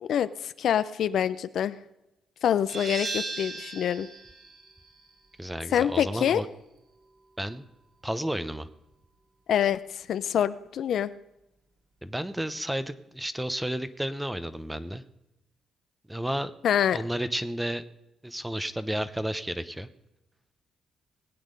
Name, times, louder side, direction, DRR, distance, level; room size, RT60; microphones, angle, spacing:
voice 1, 0.0-1.8 2.4-4.1 5.7-6.4 9.5-11.1 16.6-17.0, left 9 dB, 65° left, 14 dB, 0.5 m, -26 dB
sound 1, 2.7-8.1, right 3 dB, 50° right, 3.8 m, -39 dB
voice 2, 5.4-6.5 7.4-7.6 8.0-8.7 12.0-15.0 16.1-16.5 16.9-17.8 18.2-19.9, right 1 dB, 5° right, 13 dB, 0.8 m, -32 dB
19.5 x 8.8 x 5.2 m, 0.92 s
cardioid pair, 90°, 0 cm